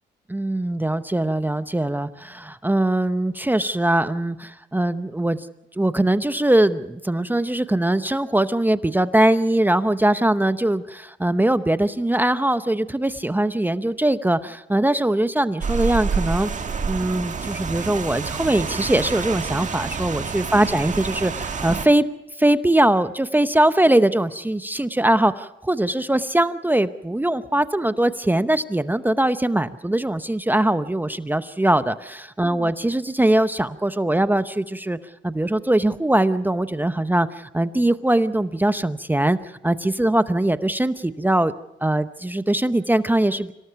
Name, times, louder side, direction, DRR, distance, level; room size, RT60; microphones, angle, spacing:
voice 1, 0.3-5.4 5.8-16.5 16.9-22.0 22.4-35.0 35.2-41.5 41.8-43.5, right 1 dB, 10° right, 12 dB, 0.8 m, -21 dB
Rain, 15.6-21.9, right 5 dB, 40° right, 1.7 m, -28 dB
26.0 x 18.0 x 5.8 m, 0.89 s
cardioid pair, 90°, 20 cm